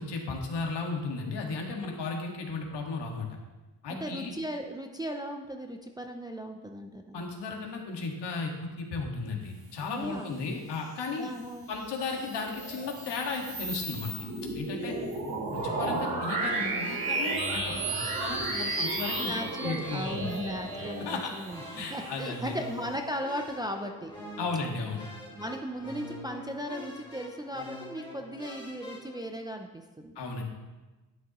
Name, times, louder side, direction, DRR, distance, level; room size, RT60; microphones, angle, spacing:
voice 1, 0.0-3.3 3.8-4.3 7.1-11.3 11.7-14.3 14.5-14.9 15.6-19.4 19.6-20.3 21.0-21.3 21.8-22.5 24.4-25.0 30.2-30.4, left 4 dB, 70° left, 1 dB, 1.8 m, -35 dB
voice 2, 3.9-7.3 9.8-10.5 11.2-11.7 14.9-15.7 19.2-24.1 25.3-30.2, equal, 10° right, 3 dB, 0.4 m, -37 dB
sound 1, 11.8-22.7, right 2 dB, 60° right, 3.0 m, -33 dB
sound 2, 15.5-29.2, left 1 dB, 10° left, 1.9 m, -45 dB
11.0 x 9.9 x 3.0 m, 1.2 s
cardioid pair, 165°, 42 cm